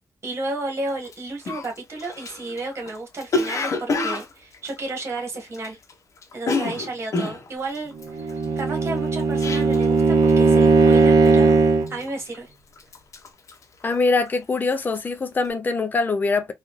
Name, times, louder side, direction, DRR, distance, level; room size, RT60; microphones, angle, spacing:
voice 1, 0.2-5.8 6.3-7.9 8.6-12.5, right 2 dB, 45° right, 1.7 m, -32 dB
Cough, 1.0-1.1 1.5-5.9 6.2-10.0 10.3-10.6 10.9-11.4 11.9-12.5 12.8-14.4 14.7-15.1, left 3 dB, 55° left, 0.8 m, -28 dB
Bowed string instrument, 8.1-12.0, right 4 dB, 80° right, 0.7 m, -17 dB
voice 2, 13.8-16.5, left 3 dB, 30° left, 0.5 m, -23 dB
4.0 x 2.5 x 3.1 m
wide cardioid pair, 140°, 6 cm